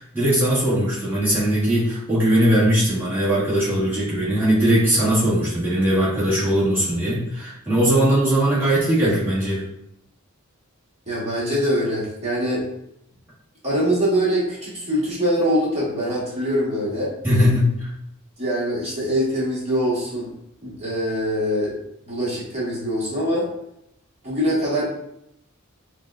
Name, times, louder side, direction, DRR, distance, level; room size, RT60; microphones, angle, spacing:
voice 1, 0.0-9.6 17.2-17.9, right 1 dB, 10° right, -9 dB, 1.4 m, -20 dB
voice 2, 11.1-12.6 13.6-17.1 18.4-20.3 20.6-21.7 22.1-23.5 24.2-24.9, equal, 30° right, -6 dB, 1.2 m, -23 dB
5.2 x 2.2 x 2.4 m, 0.77 s
head